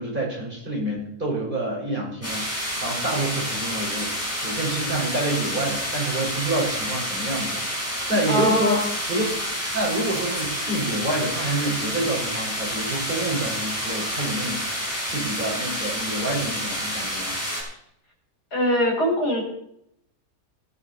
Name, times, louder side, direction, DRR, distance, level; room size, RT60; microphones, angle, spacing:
voice 1, 0.0-4.1 4.4-8.8 9.1-9.2 9.7-17.4, right 1 dB, 30° right, -4 dB, 5.4 m, -27 dB
sound 1, 2.2-17.6, equal, 10° left, 5.2 m, -29 dB
voice 2, 8.3-8.9 18.5-19.4, equal, 75° left, 1 dB, 4.5 m, -22 dB
17.5 x 10.5 x 4.3 m, 0.75 s
omnidirectional pair, 1.7 m